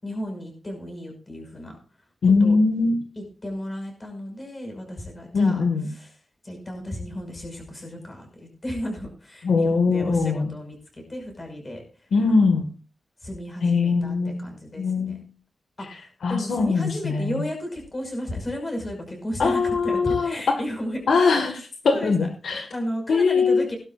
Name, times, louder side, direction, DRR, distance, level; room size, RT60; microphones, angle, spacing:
voice 1, 0.0-1.8 2.2-2.6 3.2-6.2 6.4-8.3 8.6-11.8 12.3-12.6 13.2-15.2 15.8-21.0 21.9-23.8, left 1 dB, 25° left, 3 dB, 5.9 m, -34 dB
voice 2, 2.2-3.0 5.3-5.9 9.4-10.5 12.1-12.7 13.6-14.4 14.8-15.2 16.2-17.4 19.4-20.4 21.1-22.7 23.1-23.7, left 4 dB, 75° left, 4 dB, 1.8 m, -21 dB
18.0 x 12.0 x 2.6 m, 0.36 s
wide cardioid pair, 135°, 0 cm